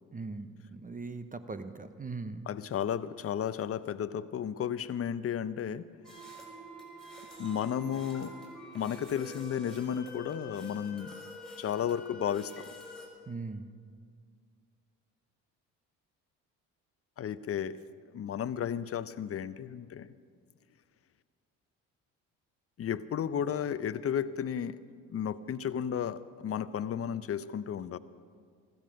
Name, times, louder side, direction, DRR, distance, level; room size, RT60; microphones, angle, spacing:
voice 1, 0.1-2.5 13.3-13.7, right 3 dB, 25° right, 10 dB, 0.8 m, -40 dB
voice 2, 2.5-5.9 7.4-8.3 8.7-11.2 11.6-12.7 17.2-17.8 18.1-20.1 22.8-24.8 25.1-28.0, left 8 dB, 40° left, 15 dB, 0.6 m, -33 dB
sound 1, 6.0-13.1, equal, ahead, 4.2 m, -47 dB
15.0 x 13.5 x 5.2 m, 2.1 s
supercardioid pair, 65°, 35 cm